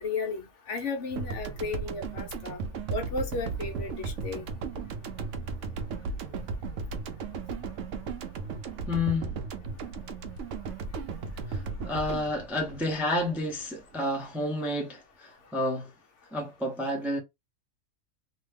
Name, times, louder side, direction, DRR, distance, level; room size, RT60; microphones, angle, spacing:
voice 1, 0.0-2.6 2.9-4.5, left 4 dB, 65° left, 1.2 m, -34 dB
sound 1, 1.2-13.6, right 4 dB, 70° right, 0.9 m, -36 dB
voice 2, 8.9-9.3 11.5-15.9 16.3-17.2, left 1 dB, ahead, 0.5 m, -30 dB
2.9 x 2.2 x 3.3 m
omnidirectional pair, 1.4 m